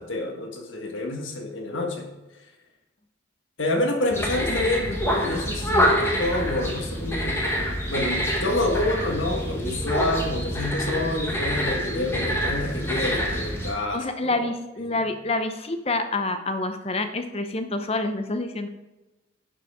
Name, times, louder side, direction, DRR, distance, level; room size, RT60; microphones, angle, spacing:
voice 1, 0.0-2.1 3.6-7.5 7.9-14.5 14.9-15.1, left 2 dB, 80° left, 3 dB, 1.6 m, -28 dB
sound 1, 4.1-13.7, equal, 15° left, 1.7 m, -26 dB
voice 2, 13.9-18.7, left 2 dB, 30° left, 8 dB, 0.8 m, -27 dB
10.5 x 7.6 x 3.7 m, 1.1 s
head